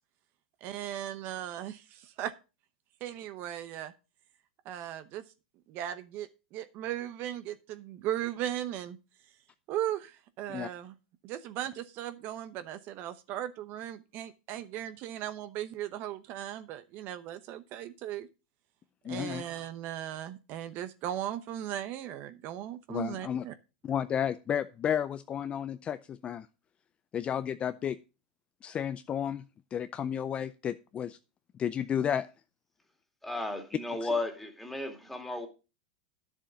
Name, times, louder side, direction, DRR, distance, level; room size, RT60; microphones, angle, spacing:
voice 1, 0.6-2.3 3.0-3.9 4.6-5.2 5.7-9.0 9.7-10.9 11.2-18.3 19.1-23.5, right 12 dB, 45° right, 0.9 m, -37 dB
voice 2, 19.0-19.4 22.9-23.4 23.8-26.5 27.1-28.0 28.6-29.4 29.7-31.2 31.6-32.3 34.0-34.1, left 9 dB, 25° left, 0.5 m, -32 dB
voice 3, 33.2-35.5, left 2 dB, 5° left, 2.3 m, -34 dB
10.0 x 7.2 x 5.2 m
supercardioid pair, 135°, 5 cm